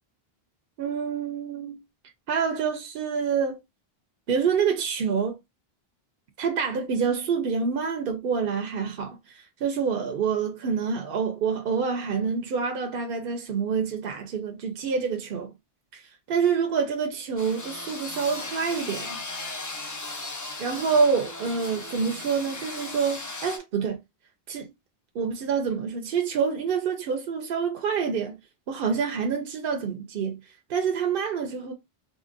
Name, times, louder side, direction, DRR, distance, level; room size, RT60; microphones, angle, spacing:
voice 1, 0.8-1.8 2.3-3.6 4.3-5.4 6.4-15.5 15.9-19.2 20.6-24.0 24.5-24.7 25.1-28.4 28.7-30.4 30.7-31.7, right 6 dB, 65° right, 0.7 m, -27 dB
sound 1, 17.4-23.6, left 2 dB, 30° left, 0.3 m, -37 dB
3.6 x 2.1 x 2.5 m
omnidirectional pair, 1.0 m